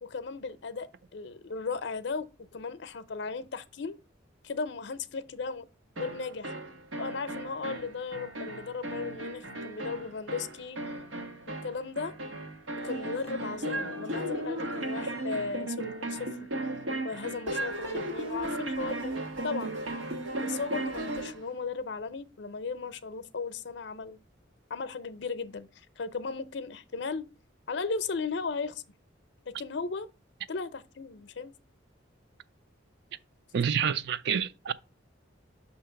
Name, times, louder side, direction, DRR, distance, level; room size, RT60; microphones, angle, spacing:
voice 1, 0.0-2.3 2.5-4.0 4.4-5.7 6.0-6.5 7.0-11.0 11.6-12.1 12.8-16.3 17.0-19.1 19.4-19.8 20.4-24.2 24.7-25.7 26.0-27.3 27.7-28.8 29.5-30.1 30.5-31.5, left 4 dB, 60° left, 0.5 m, -36 dB
sound 1, 6.0-21.4, right 1 dB, 90° right, 1.2 m, -36 dB
voice 2, 33.5-34.7, right 7 dB, 60° right, 0.4 m, -28 dB
6.5 x 2.9 x 5.7 m
head